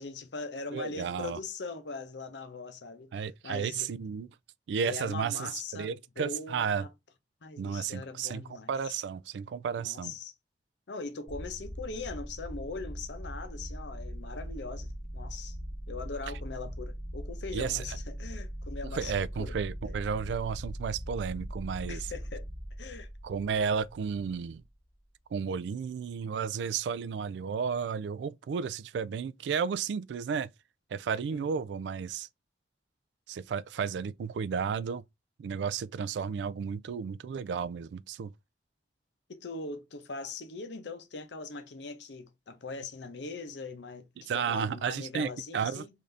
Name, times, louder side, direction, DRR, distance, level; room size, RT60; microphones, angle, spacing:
voice 1, 0.0-3.1 3.4-3.9 4.8-5.9 6.2-6.9 7.4-8.9 9.7-10.3 10.9-15.6 15.9-19.1 19.4-19.5 19.9-20.0 21.9-22.4 22.8-23.1 31.3-31.5 39.3-45.9, left 4 dB, 90° left, 0.7 m, -41 dB
voice 2, 0.7-1.4 3.1-4.3 4.7-6.9 7.6-10.2 17.5-18.0 18.9-22.1 23.2-24.6 25.3-30.5 30.9-32.3 33.3-35.0 35.4-38.3 44.3-45.8, right 6 dB, 80° right, 0.3 m, -33 dB
sound 1, 11.3-24.6, equal, 15° left, 2.1 m, -40 dB
3.7 x 2.7 x 3.2 m
head